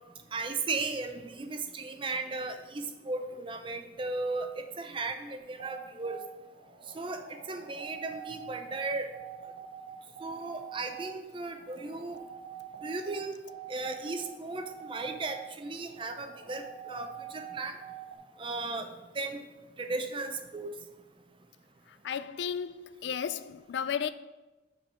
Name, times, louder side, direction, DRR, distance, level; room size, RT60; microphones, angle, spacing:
voice 1, 0.3-6.2 6.9-9.1 10.2-12.2 12.8-13.4 13.7-17.8 18.4-18.9 19.1-19.4 19.8-20.8, right 3 dB, 25° right, 0.5 m, -36 dB
sound 1, 5.4-18.2, right 10 dB, 80° right, 0.9 m, -46 dB
voice 2, 21.9-24.1, left 7 dB, 70° left, 0.3 m, -34 dB
5.2 x 4.6 x 6.2 m
head